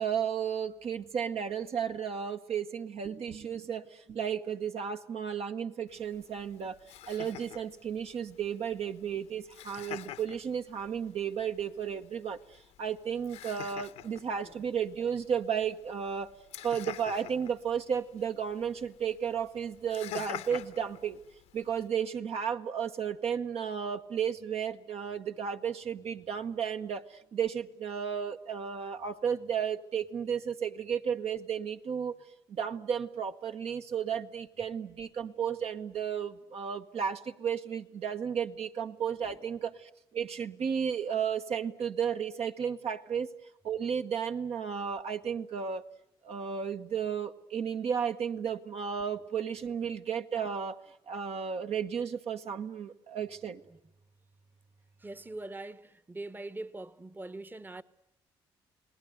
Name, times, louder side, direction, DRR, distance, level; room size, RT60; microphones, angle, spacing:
voice 1, 0.0-6.8 7.1-16.3 16.6-21.2 21.5-32.2 32.5-43.3 43.6-45.8 46.2-53.6, right 7 dB, 65° right, 1.2 m, -33 dB
Laughter, 5.9-21.9, left 12 dB, 80° left, 1.0 m, -48 dB
voice 2, 55.0-57.8, right 2 dB, 15° right, 1.0 m, -43 dB
29.5 x 19.5 x 7.9 m
supercardioid pair, 60°, 11 cm